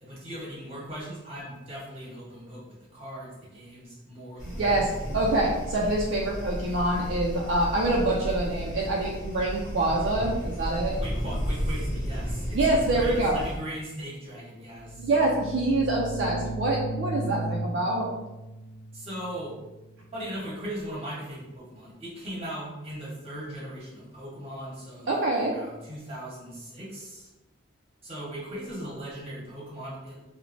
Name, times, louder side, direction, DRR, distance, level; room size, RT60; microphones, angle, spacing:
voice 1, 0.0-4.9 11.0-15.1 18.9-19.5 20.1-27.3 28.0-30.2, right 1 dB, 30° right, -7 dB, 1.0 m, -39 dB
sound 1, 4.4-13.6, equal, 35° left, 0.9 m, -33 dB
voice 2, 4.6-10.9 12.5-13.4 15.0-18.1 25.1-25.6, right 2 dB, 60° right, -2 dB, 0.3 m, -25 dB
sound 2, 14.7-20.2, right 1 dB, 90° left, 0.3 m, -36 dB
3.1 x 2.1 x 2.5 m, 1.0 s
head